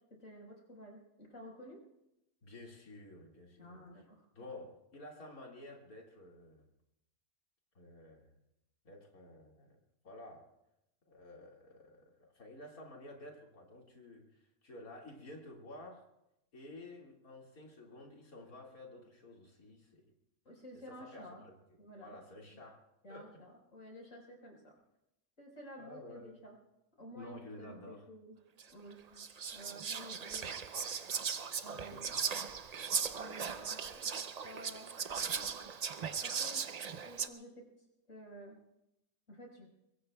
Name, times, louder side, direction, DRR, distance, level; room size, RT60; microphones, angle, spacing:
voice 1, 0.2-1.8 3.6-4.2 20.4-21.4 21.8-22.6 23.0-24.7 25.4-26.6 27.0-27.8 28.1-28.4 28.7-29.2 29.5-30.5 31.6-32.1 33.1-33.8 34.1-35.6 36.2-36.7 37.0-37.6 38.1-38.6 39.3-39.7, equal, 60° left, -1 dB, 5.0 m, -52 dB
voice 2, 2.4-4.0 4.4-6.7 7.7-8.3 8.8-9.8 10.0-10.5 11.1-16.0 16.5-20.0 20.7-21.6 22.0-22.8 23.1-23.4 25.8-26.4 27.1-28.1 31.7-32.2, left 1 dB, 75° left, -1 dB, 2.6 m, -52 dB
Whispering, 28.6-28.7 29.2-37.3, right 6 dB, 70° right, 0.3 m, -38 dB
24.5 x 22.5 x 2.3 m, 0.87 s
omnidirectional pair, 1.5 m